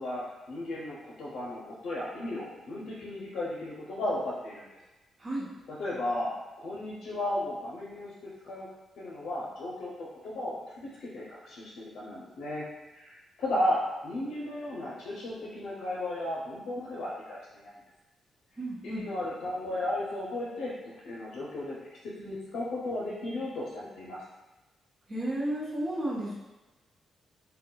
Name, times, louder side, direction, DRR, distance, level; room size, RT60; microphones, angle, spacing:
voice 1, 0.0-4.7 5.7-6.3 6.6-8.7 9.0-10.7 11.0-12.7 12.9-17.7 18.8-20.7 21.0-21.8 22.0-24.2, left 1 dB, 80° left, -6 dB, 0.5 m, -34 dB
voice 2, 18.6-19.0 25.1-26.3, right 1 dB, 30° right, -9 dB, 0.9 m, -32 dB
3.7 x 2.2 x 2.2 m, 1.1 s
cardioid pair, 140°, 0 cm